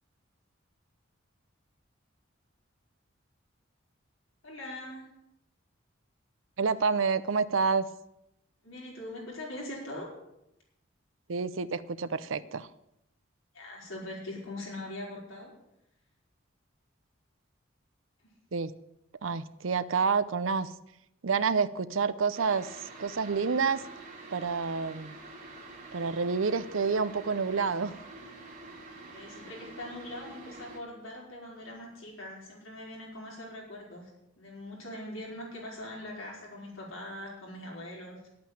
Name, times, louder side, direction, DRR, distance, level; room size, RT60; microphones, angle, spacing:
voice 1, 4.4-5.1 8.6-10.1 13.5-15.5 18.2-18.3 29.1-34.1 34.4-38.3, left 1 dB, 85° left, -3 dB, 5.0 m, -42 dB
voice 2, 6.6-7.9 11.3-12.7 18.5-18.7 19.2-20.7 21.2-23.8 24.3-25.1 25.9-27.9, right 5 dB, 80° right, 14 dB, 0.6 m, -28 dB
sound 1, 22.3-30.8, right 2 dB, 40° right, 3.3 m, -47 dB
10.5 x 8.7 x 8.9 m, 0.85 s
head